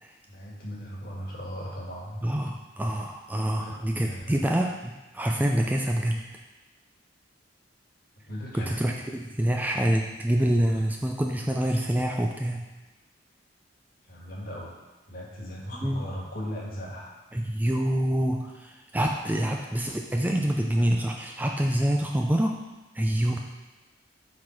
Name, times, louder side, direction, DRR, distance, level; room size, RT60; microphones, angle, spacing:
voice 1, 0.3-2.2 3.5-4.5 8.3-8.7 10.7-10.8 14.1-14.8 15.1-17.1, equal, 55° left, -3 dB, 1.6 m, -37 dB
voice 2, 2.2-6.2 8.5-12.6 15.8-16.1 17.3-22.6 22.9-23.4, right 1 dB, 10° right, 1 dB, 0.4 m, -26 dB
7.5 x 3.9 x 4.4 m, 1.1 s
head